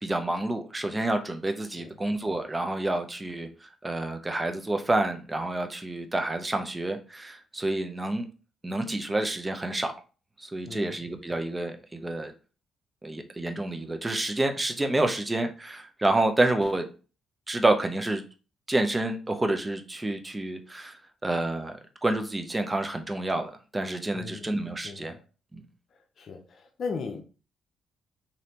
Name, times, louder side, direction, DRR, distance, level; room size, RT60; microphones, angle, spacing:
voice 1, 0.0-8.3 8.6-9.9 10.4-12.3 13.0-16.9 17.5-18.2 18.7-21.0 21.2-25.1 25.5-25.6, right 2 dB, 15° right, 0.5 m, -28 dB
voice 2, 24.1-24.5 24.8-25.2 26.2-27.2, left 5 dB, 55° left, 0.6 m, -37 dB
3.2 x 2.7 x 2.8 m
cardioid pair, 90°, 0 cm